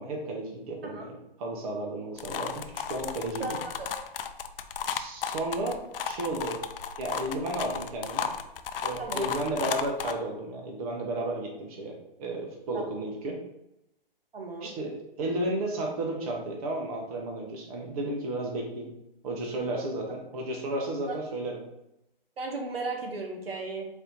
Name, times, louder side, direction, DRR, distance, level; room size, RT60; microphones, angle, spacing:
voice 1, 0.0-3.6 4.9-6.6 7.0-8.3 8.8-13.4 14.6-18.9 19.2-21.6, right 1 dB, 40° right, 0 dB, 1.0 m, -33 dB
sound 1, 2.2-10.1, left 7 dB, 70° left, 0.5 m, -34 dB
voice 2, 3.4-3.9 9.0-9.3 12.7-12.8 14.3-14.7 21.1-21.2 22.4-23.8, right 3 dB, 80° right, 1 dB, 1.1 m, -35 dB
4.2 x 2.8 x 3.9 m, 0.85 s
hypercardioid pair, 140°, 29 cm